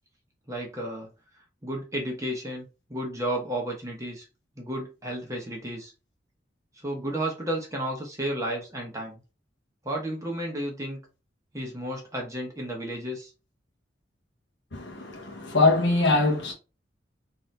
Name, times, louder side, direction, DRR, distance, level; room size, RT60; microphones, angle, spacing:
voice 1, 0.5-1.1 1.6-4.3 4.6-5.9 6.8-9.2 9.8-11.0 11.5-13.3, right 1 dB, 20° right, 1.0 m, -32 dB
voice 2, 14.7-16.5, left 3 dB, 70° left, 1.0 m, -23 dB
3.8 x 2.8 x 3.2 m
head